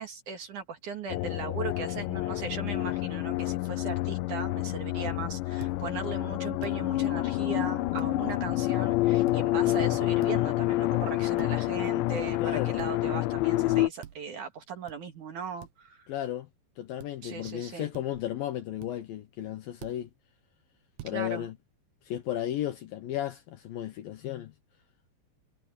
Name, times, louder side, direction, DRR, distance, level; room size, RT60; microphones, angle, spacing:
voice 1, 0.0-16.0 17.2-17.9 21.0-21.5, right 6 dB, 55° right, 2.9 m, -38 dB
sound 1, 1.1-13.9, left 17 dB, 85° left, 3.0 m, -28 dB
sound 2, 5.6-5.8 6.6-6.8 8.0-8.1 9.3-9.4 9.7-10.4 11.4-11.5 12.8-13.0 14.0-14.2 14.9-15.0 15.6-15.7 17.0-17.1 17.5-17.6 17.9-18.3 18.8-18.9 19.8-20.0 21.0-21.2, right 14 dB, 75° right, 3.0 m, -46 dB
voice 2, 12.4-12.8 16.1-16.5 16.8-20.1 21.0-21.6 22.1-24.5, left 12 dB, 70° left, 2.3 m, -34 dB
omnidirectional pair, 5.1 m